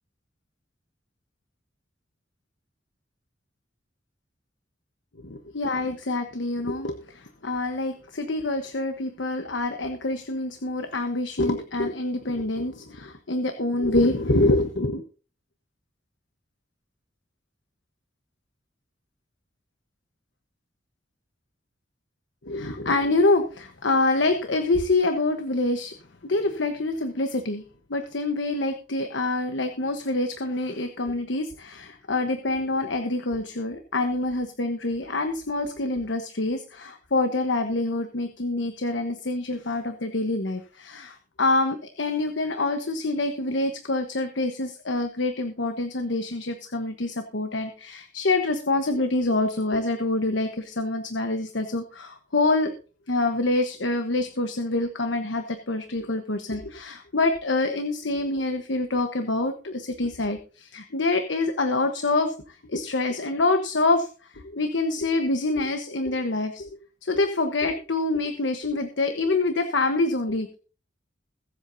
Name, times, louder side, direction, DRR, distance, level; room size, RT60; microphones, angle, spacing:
voice 1, 5.2-15.0 22.4-25.9 26.2-27.6 27.9-52.7 53.1-70.6, left 2 dB, 85° left, 6 dB, 1.2 m, -26 dB
22.0 x 8.2 x 2.8 m, 0.37 s
head